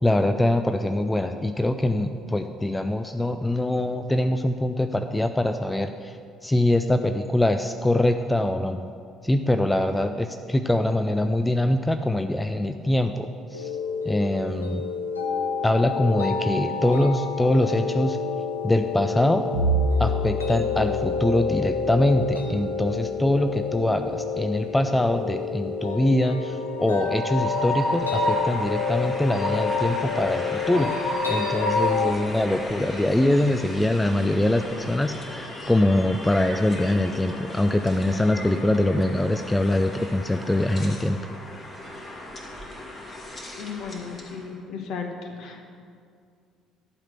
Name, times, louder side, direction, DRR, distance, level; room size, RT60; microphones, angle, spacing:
voice 1, 0.0-6.2 6.4-8.8 9.2-13.7 14.0-14.8 15.6-18.2 18.6-19.5 20.0-41.2, left 1 dB, 10° left, 8 dB, 0.4 m, -23 dB
sound 1, 13.5-32.1, left 6 dB, 80° left, 0.9 m, -29 dB
Bowed string instrument, 19.5-23.7, right 1 dB, 70° right, 0.9 m, -29 dB
Train, 26.6-44.4, equal, 30° left, 2.1 m, -33 dB
voice 2, 43.6-45.1 45.4-45.6, left 6 dB, 55° left, 3 dB, 1.2 m, -35 dB
11.5 x 5.0 x 7.9 m, 2.3 s
figure-of-eight pair, 50°, 0 cm